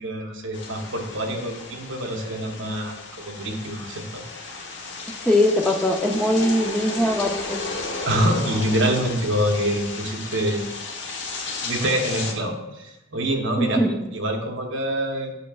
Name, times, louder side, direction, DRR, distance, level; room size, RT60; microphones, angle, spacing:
voice 1, 0.0-4.2 8.0-10.6 11.6-13.8 14.1-15.4, equal, 60° right, 2 dB, 0.9 m, -26 dB
sound 1, 0.5-12.3, left 3 dB, 55° left, 0.9 m, -34 dB
voice 2, 5.3-7.6 13.6-14.0, left 1 dB, 5° left, 1 dB, 0.5 m, -21 dB
8.5 x 5.9 x 2.3 m, 0.95 s
head